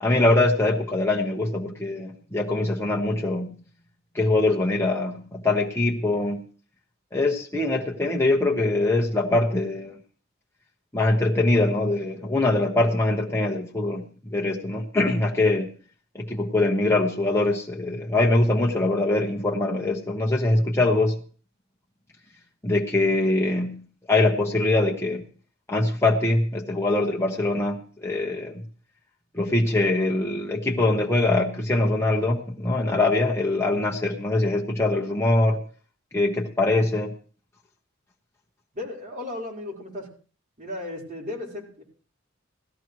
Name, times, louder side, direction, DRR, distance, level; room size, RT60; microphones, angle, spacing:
voice 1, 0.0-3.6 4.1-6.4 7.1-9.9 10.9-15.7 16.1-21.1 22.6-25.2 25.7-28.6 29.3-35.6 36.1-37.1, left 2 dB, 15° left, -1 dB, 1.0 m, -23 dB
voice 2, 38.7-40.1 40.6-41.8, left 2 dB, 40° right, -2 dB, 4.4 m, -35 dB
17.0 x 13.5 x 3.2 m, 0.41 s
head